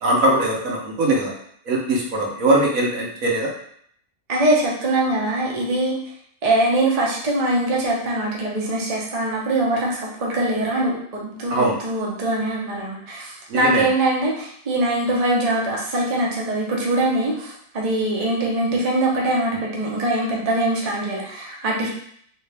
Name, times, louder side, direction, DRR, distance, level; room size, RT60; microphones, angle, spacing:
voice 1, 0.0-1.3 1.7-3.5 11.5-11.7 13.5-13.8, right 1 dB, 70° right, -2 dB, 1.2 m, -20 dB
voice 2, 4.3-6.0 6.4-21.9, right 1 dB, 40° right, -3 dB, 0.6 m, -22 dB
3.1 x 2.7 x 3.3 m, 0.65 s
omnidirectional pair, 1.5 m